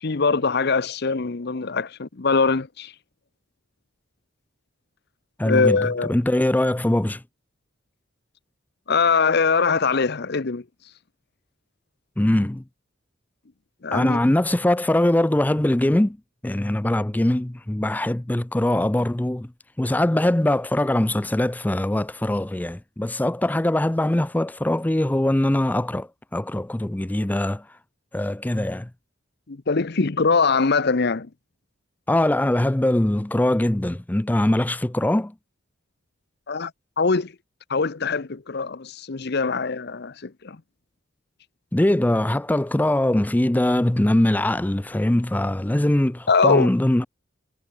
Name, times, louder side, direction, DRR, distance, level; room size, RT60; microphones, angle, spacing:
voice 1, 0.0-2.9 5.4-6.1 8.9-10.6 13.8-14.2 29.5-31.3 36.5-36.7 37.0-37.3 37.7-40.6 46.3-46.7, left 4 dB, 55° left, 0.8 m, -22 dB
voice 2, 5.4-7.2 12.2-12.6 13.9-16.2 16.4-19.5 19.8-27.6 28.1-28.9 32.1-35.3 41.7-47.1, left 1 dB, 10° left, 0.4 m, -22 dB
head